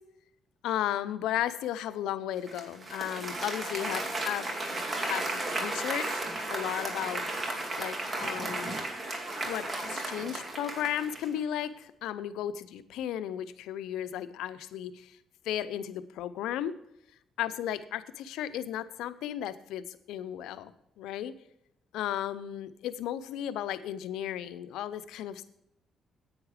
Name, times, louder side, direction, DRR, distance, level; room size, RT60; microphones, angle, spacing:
voice 1, 0.6-6.2 6.5-7.2 7.8-8.8 9.5-15.2 15.4-16.7 17.4-21.3 21.9-25.5, left 11 dB, 90° left, 13 dB, 0.6 m, -35 dB
Applause, 2.5-11.4, right 2 dB, 35° right, 2.5 m, -34 dB
9.6 x 9.0 x 4.9 m, 0.79 s
cardioid pair, 90°, 0 cm